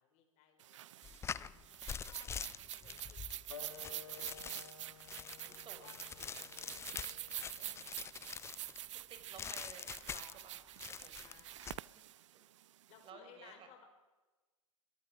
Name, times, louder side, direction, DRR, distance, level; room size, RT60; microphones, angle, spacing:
voice 1, 0.0-1.2 1.7-2.5 2.9-4.7 5.8-8.4 8.7-8.8 11.2-11.6 12.9-13.8, left 9 dB, 40° left, 4 dB, 4.7 m, -63 dB
sound 1, 0.6-13.0, right 13 dB, 60° right, 0.6 m, -47 dB
sound 2, 1.0-8.8 9.4-10.5 10.8-11.8, left 7 dB, 15° left, 0.6 m, -45 dB
voice 2, 1.3-1.7 2.7-3.1 5.4-5.9 7.6-7.9 8.9-11.4 11.9-12.1 13.0-13.7, right 7 dB, 30° right, 7 dB, 4.5 m, -57 dB
Wind instrument woodwind instrument, 3.5-8.6, left 7 dB, 75° left, 2.1 m, -56 dB
24.5 x 22.5 x 5.0 m, 1.2 s
figure-of-eight pair, 100°, 17 cm